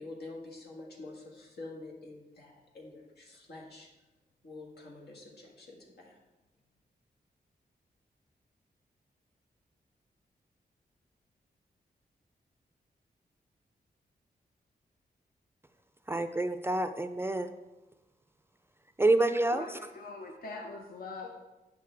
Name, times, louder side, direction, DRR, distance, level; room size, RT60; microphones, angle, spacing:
voice 1, 0.0-3.9 4.4-6.2, left 2 dB, 90° left, -1 dB, 1.8 m, -47 dB
voice 2, 16.1-17.5 19.0-19.7, right 2 dB, 15° right, 9 dB, 0.3 m, -27 dB
voice 3, 19.5-21.3, left 3 dB, 65° left, 2 dB, 0.7 m, -42 dB
8.3 x 6.6 x 3.5 m, 1.1 s
wide cardioid pair, 125°, 16 cm